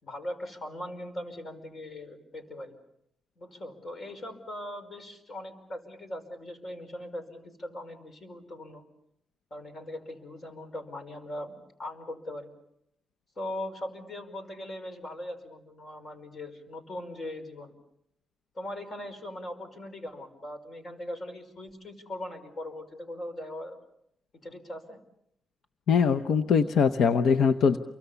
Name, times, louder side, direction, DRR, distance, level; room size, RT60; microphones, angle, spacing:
voice 1, 0.0-2.8 3.4-8.8 9.5-12.5 13.4-17.7 18.6-23.8 24.3-25.0, left 1 dB, 45° left, 9 dB, 5.3 m, -40 dB
voice 2, 25.9-27.8, left 6 dB, 80° left, 9 dB, 0.9 m, -22 dB
29.5 x 24.0 x 7.0 m, 0.76 s
cardioid pair, 90°, 0 cm